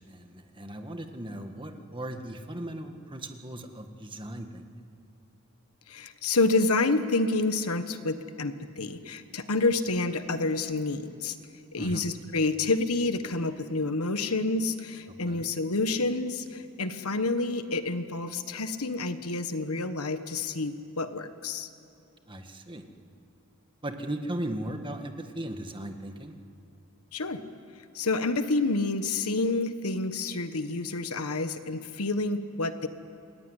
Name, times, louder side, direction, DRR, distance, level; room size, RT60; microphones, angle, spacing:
voice 1, 0.0-4.6 11.7-12.1 15.3-15.4 22.3-22.8 23.8-26.3, right 1 dB, 20° right, 5 dB, 1.7 m, -37 dB
voice 2, 5.9-11.3 11.7-21.7 27.1-27.4 27.9-32.9, left 3 dB, 80° left, 10 dB, 1.4 m, -28 dB
27.5 x 20.0 x 9.9 m, 2.8 s
head